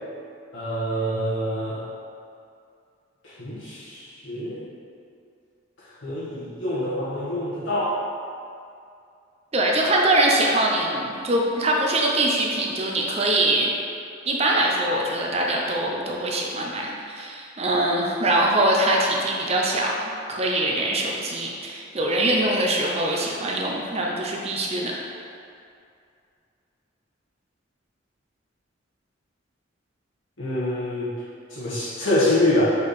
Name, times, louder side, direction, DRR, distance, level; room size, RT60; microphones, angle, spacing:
voice 1, 0.5-1.8 3.2-4.6 6.0-8.0 30.4-31.1 31.5-32.6, left 1 dB, 80° left, -10 dB, 1.6 m, -25 dB
voice 2, 9.5-13.7 14.3-19.9 20.3-24.9, right 1 dB, 30° right, -1 dB, 0.7 m, -23 dB
5.1 x 4.6 x 5.2 m, 2.4 s
head